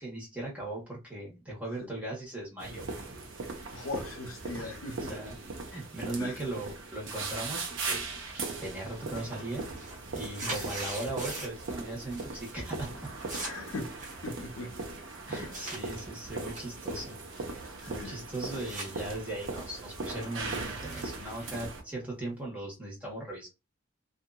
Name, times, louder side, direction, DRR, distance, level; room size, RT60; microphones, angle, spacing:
voice 1, 0.0-2.9 4.6-5.4 5.7-8.2 8.6-9.7 10.1-13.1 15.3-23.5, right 2 dB, 5° right, 1.2 m, -38 dB
sound 1, 2.6-21.8, right 3 dB, 70° right, 0.7 m, -39 dB
voice 2, 3.7-5.1 6.2-6.4 10.4-10.6 13.4-14.9 15.3-15.6 17.9-18.2, left 2 dB, 85° left, 0.6 m, -40 dB
sound 2, 8.3-8.7 9.0-11.7 12.0-12.5 12.8-15.8 16.3-18.9 19.3-22.4, right 2 dB, 35° right, 1.0 m, -43 dB
2.7 x 2.5 x 2.2 m
head